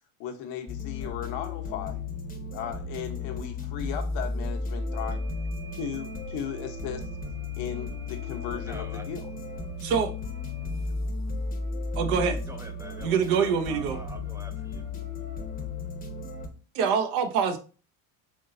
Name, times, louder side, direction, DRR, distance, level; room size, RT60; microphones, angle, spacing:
voice 1, 0.2-2.0 2.5-5.2 5.7-7.1 7.6-9.3, left 9 dB, 70° left, 1.0 m, -36 dB
sound 1, 0.7-16.5, left 3 dB, 20° left, 0.8 m, -34 dB
sound 2, 4.9-11.0 13.8-14.0, right 5 dB, 60° right, 1.5 m, -53 dB
voice 2, 8.7-9.1 12.5-14.8, right 1 dB, 5° right, 0.4 m, -45 dB
voice 3, 9.8-10.1 12.0-12.4 13.0-14.0 16.7-17.6, right 6 dB, 75° right, 0.9 m, -25 dB
3.7 x 3.7 x 2.6 m
supercardioid pair, 115°, 47 cm